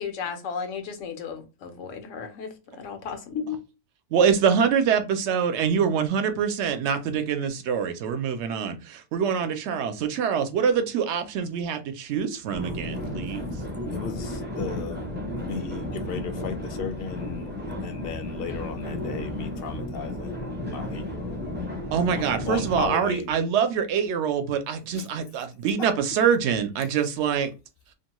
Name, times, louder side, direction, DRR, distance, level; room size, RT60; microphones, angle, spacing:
voice 1, 0.0-2.5 2.8-3.6, left 6 dB, 85° left, 1.1 m, -34 dB
voice 2, 4.1-13.5 21.9-27.5, right 7 dB, 70° right, 0.8 m, -25 dB
sound 1, 12.5-22.9, left 1 dB, 15° right, 0.4 m, -33 dB
voice 3, 13.9-21.4 22.1-23.3 24.9-25.1 25.8-25.9 26.8-26.9, left 6 dB, 60° left, 0.7 m, -35 dB
2.7 x 2.2 x 2.9 m
omnidirectional pair, 1.3 m